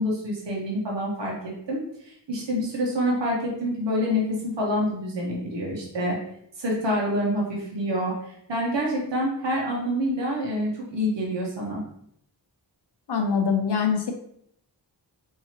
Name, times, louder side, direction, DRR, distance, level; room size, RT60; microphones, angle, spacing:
voice 1, 0.0-1.3 1.7-6.2 6.6-11.8, equal, 80° right, -3 dB, 1.2 m, -27 dB
voice 2, 13.1-14.1, left 6 dB, 65° left, 4 dB, 0.7 m, -23 dB
4.7 x 2.8 x 2.9 m, 0.70 s
wide cardioid pair, 85°, 43 cm